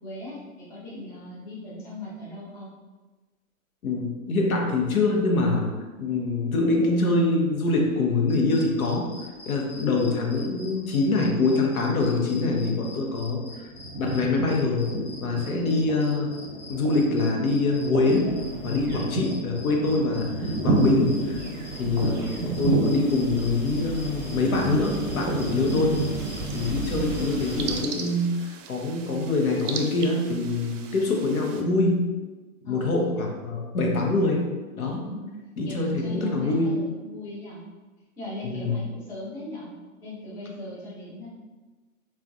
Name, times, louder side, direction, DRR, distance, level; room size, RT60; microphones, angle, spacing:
voice 1, 0.0-2.7 26.7-27.4 32.6-33.1 35.0-35.3 35.6-37.6 38.2-39.7 40.0-41.3, left 1 dB, 10° left, -7 dB, 0.3 m, -39 dB
voice 2, 3.8-5.7 6.0-9.1 9.5-13.7 14.0-14.9 15.2-16.3 16.7-18.3 18.6-21.4 21.7-25.9 26.5-32.1 32.6-34.5 34.7-35.0 35.6-36.7 38.4-38.8, left 3 dB, 85° left, 0 dB, 0.8 m, -24 dB
sound 1, 8.3-28.1, left 2 dB, 35° left, 1.0 m, -45 dB
sound 2, 12.7-13.3 13.6-27.8, right 2 dB, 25° right, 0.8 m, -30 dB
sound 3, 26.2-31.6, right 6 dB, 60° right, 0.5 m, -39 dB
3.4 x 2.3 x 2.5 m, 1.2 s
hypercardioid pair, 115°, 42 cm